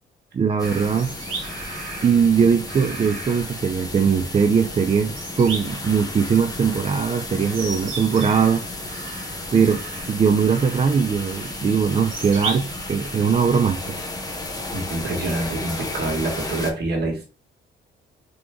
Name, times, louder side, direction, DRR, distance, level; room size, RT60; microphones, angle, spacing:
voice 1, 0.3-1.1 2.0-8.6 9.5-9.8 10.1-14.0, right 6 dB, 30° right, 0.5 m, -20 dB
sound 1, 0.6-16.7, left 2 dB, 20° left, 1.0 m, -33 dB
sound 2, 0.6-16.7, right 4 dB, 80° right, 1.4 m, -38 dB
voice 2, 14.7-17.3, right 2 dB, 55° right, 1.7 m, -26 dB
3.8 x 3.0 x 3.5 m
cardioid pair, 90°, 20 cm